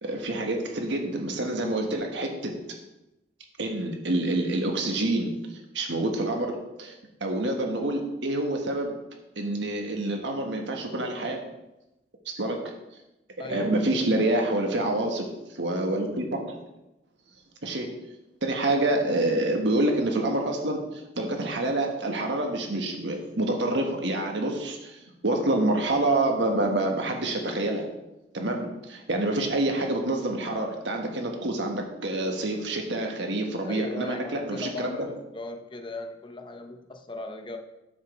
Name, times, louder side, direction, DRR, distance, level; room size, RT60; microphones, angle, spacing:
voice 1, 0.0-2.5 3.6-5.3 5.7-6.9 7.2-8.9 9.4-11.4 12.2-12.7 13.5-15.3 15.5-16.4 17.6-17.9 18.4-25.0 25.2-27.8 28.3-35.1, right 2 dB, 85° right, 2 dB, 1.5 m, -27 dB
voice 2, 13.4-14.4 33.6-37.6, left 2 dB, 25° left, 5 dB, 0.7 m, -38 dB
10.0 x 7.5 x 3.3 m, 0.94 s
head